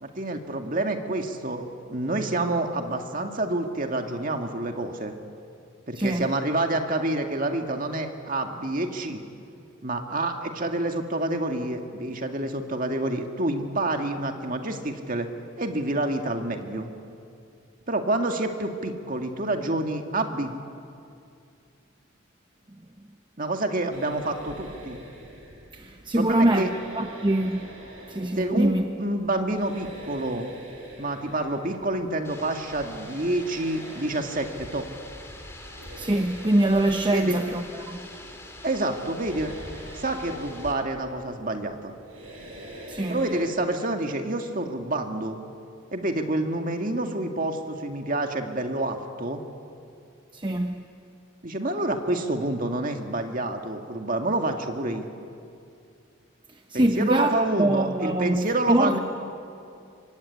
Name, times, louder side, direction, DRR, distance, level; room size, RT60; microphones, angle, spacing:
voice 1, 0.0-5.1 5.9-9.2 9.8-15.3 15.6-16.9 17.9-20.5 23.4-25.0 26.2-26.7 28.4-30.5 31.0-34.8 37.1-37.4 38.6-39.5 39.9-41.9 43.1-45.4 45.9-49.4 51.4-55.1 56.7-59.0, right 2 dB, 40° right, 2.1 m, -28 dB
voice 2, 5.9-6.3 25.7-26.7 26.9-27.7 28.1-28.8 36.0-38.0 42.9-43.2 50.3-50.8 56.7-57.3 57.6-59.0, right 1 dB, 25° right, 0.9 m, -24 dB
sound 1, 23.9-43.4, equal, 80° right, 6.9 m, -45 dB
sound 2, 32.2-40.7, left 1 dB, 15° left, 3.3 m, -44 dB
24.5 x 24.5 x 9.8 m
head